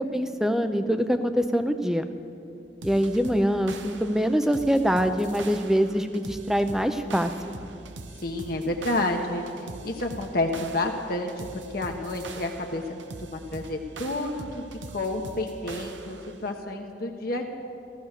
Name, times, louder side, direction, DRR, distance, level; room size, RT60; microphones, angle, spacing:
voice 1, 0.1-2.0 2.8-7.5, equal, 5° right, 9 dB, 0.6 m, -24 dB
sound 1, 2.8-16.4, right 3 dB, 80° right, 0.9 m, -42 dB
voice 2, 8.2-14.6 14.9-17.4, left 2 dB, 50° left, 2 dB, 1.1 m, -30 dB
15.0 x 14.0 x 6.6 m, 2.7 s
head